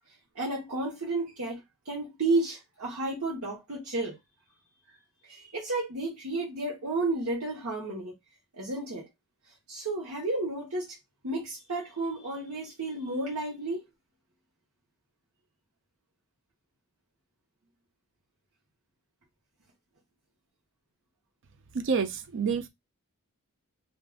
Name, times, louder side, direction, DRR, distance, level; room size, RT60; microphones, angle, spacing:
voice 1, 0.3-4.2 5.2-8.1 8.5-9.1 9.7-11.0 11.2-13.8, right 2 dB, 85° right, 1.1 m, -32 dB
voice 2, 21.7-22.7, right 5 dB, 55° right, 0.5 m, -28 dB
2.6 x 2.3 x 3.4 m
head